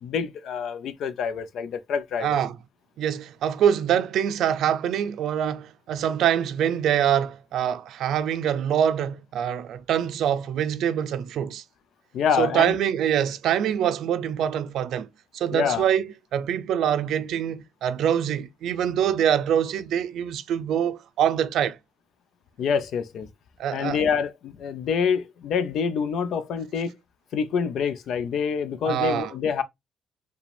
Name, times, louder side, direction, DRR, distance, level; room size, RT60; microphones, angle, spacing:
voice 1, 0.0-2.4 12.1-12.8 15.5-15.8 22.6-23.3 23.7-27.0 27.3-29.6, left 6 dB, 70° left, 0.5 m, -26 dB
voice 2, 2.2-2.5 3.0-11.6 12.4-15.1 15.3-21.8 23.6-24.0 28.9-29.3, right 9 dB, 80° right, 0.4 m, -24 dB
4.8 x 2.3 x 3.3 m
cardioid pair, 90°, 0 cm